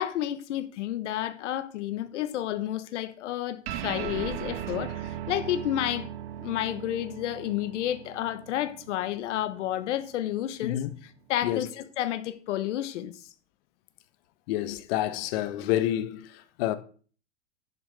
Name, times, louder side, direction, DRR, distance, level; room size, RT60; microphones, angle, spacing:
voice 1, 0.0-6.1 6.4-13.2, left 12 dB, 70° left, 1.1 m, -31 dB
sound 1, 3.7-10.4, right 11 dB, 55° right, 1.2 m, -38 dB
voice 2, 10.6-10.9 11.4-11.7 14.5-16.8, left 13 dB, 50° left, 1.3 m, -29 dB
11.0 x 6.5 x 4.8 m
hypercardioid pair, 135°, 38 cm